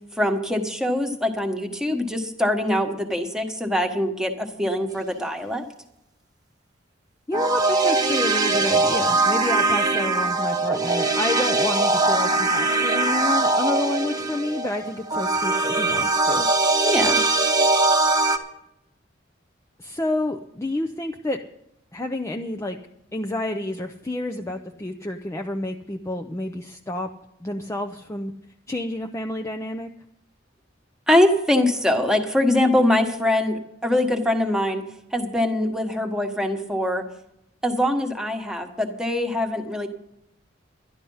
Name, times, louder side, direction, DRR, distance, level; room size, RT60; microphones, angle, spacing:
voice 1, 0.2-5.6 16.8-17.2 31.1-34.8 35.1-37.0 37.6-39.9, left 1 dB, 5° right, 4 dB, 1.3 m, -23 dB
voice 2, 7.3-16.5 19.8-21.4 21.9-22.8 23.1-27.1 27.4-28.3 28.7-29.9, left 1 dB, 15° left, 4 dB, 0.5 m, -29 dB
sound 1, 7.3-18.4, right 3 dB, 20° right, 1.0 m, -21 dB
11.5 x 11.5 x 5.5 m, 0.83 s
head